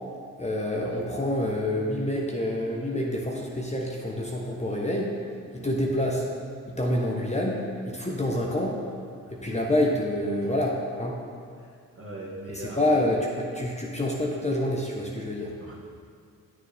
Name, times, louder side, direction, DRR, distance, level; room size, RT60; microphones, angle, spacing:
voice 1, 0.4-5.1 5.5-6.2 6.7-8.8 9.3-11.2 12.5-15.5, left 1 dB, 15° left, -2 dB, 1.2 m, -27 dB
voice 2, 9.2-9.6 10.4-10.5 11.6-12.8 15.6-15.7, right 2 dB, 35° right, -4 dB, 2.2 m, -41 dB
9.1 x 6.6 x 3.6 m, 2.2 s
hypercardioid pair, 50°, 38 cm